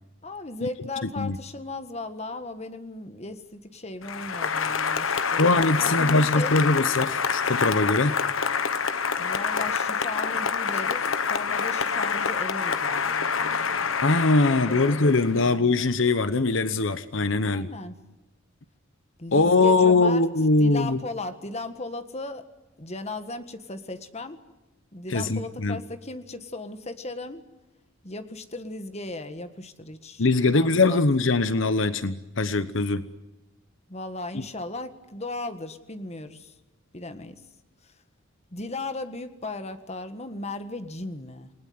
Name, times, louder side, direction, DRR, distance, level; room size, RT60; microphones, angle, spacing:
voice 1, 0.2-6.6 9.2-13.9 14.4-15.8 17.4-18.0 19.2-20.3 20.6-22.5 22.8-24.4 24.9-27.4 28.0-31.0 33.9-36.5 36.9-37.4 37.8-37.9 38.5-41.5, left 2 dB, 35° left, 9 dB, 1.7 m, -37 dB
Applause, 4.0-15.5, left 6 dB, 85° left, 1.2 m, -27 dB
voice 2, 5.4-8.1 14.0-17.7 19.3-21.0 25.1-25.8 30.2-33.1, left 3 dB, 70° left, 13 dB, 1.0 m, -22 dB
29.0 x 20.0 x 9.5 m, 1.1 s
head